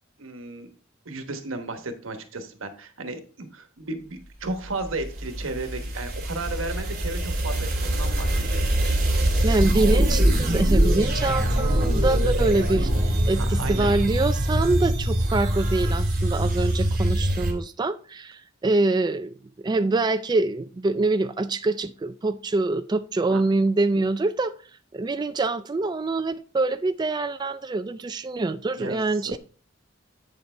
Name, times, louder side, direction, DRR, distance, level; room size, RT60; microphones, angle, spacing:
voice 1, 0.2-0.7 1.0-8.9 13.6-13.9 23.3-23.4 28.8-29.3, right 2 dB, 90° right, 7 dB, 1.2 m, -34 dB
sound 1, 4.7-17.5, right 1 dB, 50° right, 2.3 m, -23 dB
voice 2, 9.4-24.5 24.9-29.4, right 2 dB, 20° right, 10 dB, 0.3 m, -25 dB
8.3 x 6.6 x 3.3 m, 0.41 s
head